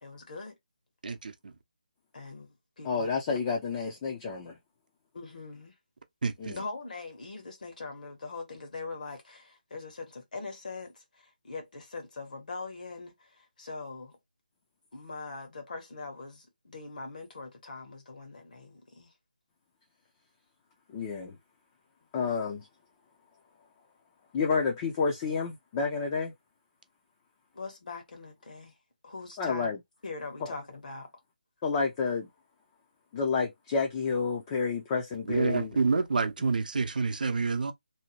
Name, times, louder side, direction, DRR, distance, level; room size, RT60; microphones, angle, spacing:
voice 1, 0.0-0.5 2.1-3.4 5.1-5.7 6.5-14.2 14.9-19.1 27.5-28.7 29.0-29.7 30.0-31.1, left 3 dB, 60° left, 1.2 m, -42 dB
voice 2, 1.0-1.5 6.2-6.5 35.3-37.7, right 4 dB, 65° right, 0.6 m, -28 dB
voice 3, 2.8-4.6 6.4-6.6 20.9-21.4 22.1-22.7 24.3-26.3 29.4-29.8 30.4-30.5 31.6-32.3 33.1-35.8, left 5 dB, 20° left, 0.5 m, -30 dB
2.7 x 2.1 x 2.8 m
figure-of-eight pair, 165°, 5 cm